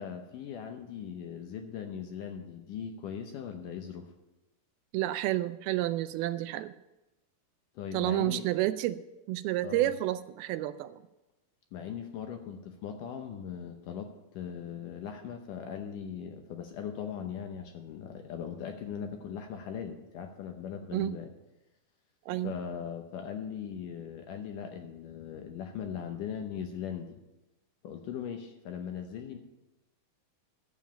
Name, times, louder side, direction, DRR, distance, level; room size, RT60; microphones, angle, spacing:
voice 1, 0.0-4.1 7.8-8.5 9.6-9.9 11.7-21.3 22.4-27.2 27.8-29.4, left 8 dB, 75° left, 5 dB, 2.1 m, -39 dB
voice 2, 4.9-6.7 7.9-9.0 9.3-11.0 20.9-21.2 22.3-22.5, right 15 dB, 85° right, 12 dB, 2.3 m, -30 dB
11.5 x 7.2 x 8.5 m, 0.99 s
omnidirectional pair, 4.5 m